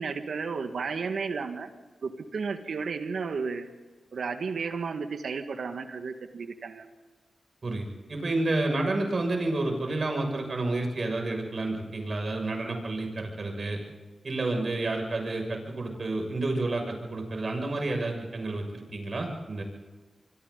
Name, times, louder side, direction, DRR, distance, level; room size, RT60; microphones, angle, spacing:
voice 1, 0.0-1.7 2.0-3.7 4.1-6.9, right 5 dB, 75° right, 7 dB, 1.9 m, -33 dB
voice 2, 7.6-13.8 14.2-19.6, right 2 dB, 60° right, 3 dB, 6.7 m, -30 dB
26.0 x 25.5 x 4.1 m, 1.4 s
cardioid pair, 45°, 0 cm